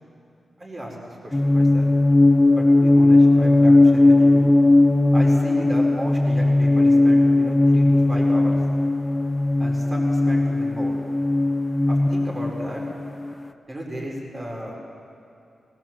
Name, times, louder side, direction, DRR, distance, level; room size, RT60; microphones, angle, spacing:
voice 1, 0.6-1.9 2.5-4.5 5.1-8.6 9.6-11.0 11.9-12.8 13.7-15.0, equal, 25° right, -2 dB, 4.7 m, -34 dB
sound 1, 1.3-13.3, left 2 dB, 15° left, 0.8 m, -17 dB
20.5 x 19.5 x 7.6 m, 2.6 s
wide cardioid pair, 120°, 0 cm